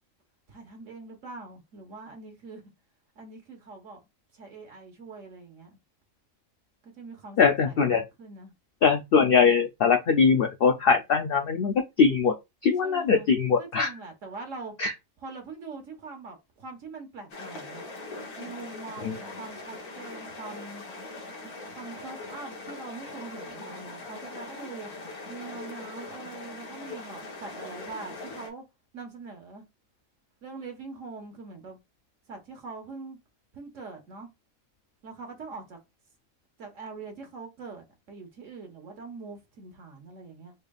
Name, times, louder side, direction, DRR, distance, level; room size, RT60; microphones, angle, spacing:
voice 1, 0.5-2.6 3.2-4.0 4.3-5.8 6.8-8.5 12.8-13.3 13.6-14.7 15.2-17.8 18.4-20.8 21.7-24.9 25.3-28.6 28.9-29.7 30.4-31.8 32.3-33.2 33.5-34.3 35.0-35.8 36.6-40.5, right 4 dB, 60° right, 1.5 m, -43 dB
voice 2, 7.4-8.0 8.8-12.3 12.6-13.9 14.8-14.9 19.0-19.2, left 5 dB, 70° left, 0.5 m, -22 dB
sound 1, 17.3-28.5, left 2 dB, 90° left, 1.7 m, -41 dB
4.4 x 3.3 x 2.3 m
omnidirectional pair, 1.5 m